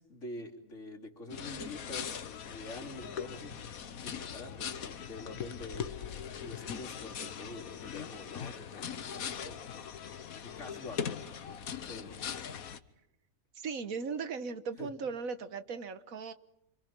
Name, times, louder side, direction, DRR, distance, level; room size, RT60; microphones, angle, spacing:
voice 1, 0.0-3.6 4.0-5.9 6.3-9.6 10.4-11.1 11.9-12.2 14.8-14.9, left 2 dB, 60° left, 3.5 m, -46 dB
sound 1, 1.3-12.8, left 7 dB, 85° left, 1.5 m, -40 dB
voice 2, 13.6-16.3, right 5 dB, 80° right, 1.6 m, -38 dB
28.5 x 26.0 x 6.0 m
omnidirectional pair, 1.5 m